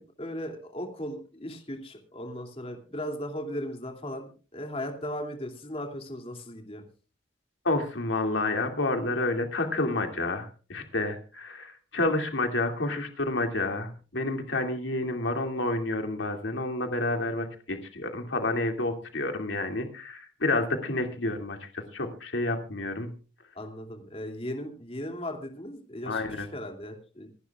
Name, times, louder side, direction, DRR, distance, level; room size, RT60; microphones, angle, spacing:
voice 1, 0.0-6.8 23.5-27.3, left 1 dB, 30° left, 3 dB, 2.6 m, -37 dB
voice 2, 7.6-23.1 26.1-26.5, left 2 dB, 75° left, 5 dB, 2.4 m, -29 dB
27.0 x 11.5 x 2.4 m, 0.35 s
head